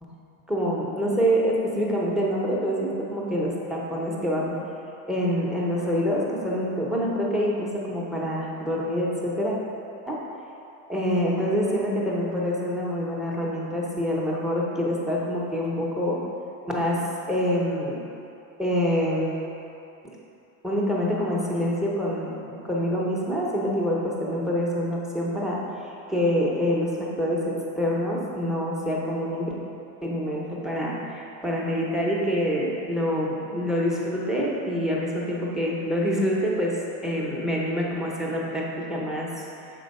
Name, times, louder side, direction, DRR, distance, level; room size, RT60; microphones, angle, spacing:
voice 1, 0.5-4.5 5.1-9.5 10.1-10.2 10.9-16.2 16.7-18.0 18.6-19.3 20.6-29.5 30.0-39.7, equal, ahead, -4 dB, 0.6 m, -26 dB
6.2 x 4.5 x 5.2 m, 2.8 s
cardioid pair, 175°, 34 cm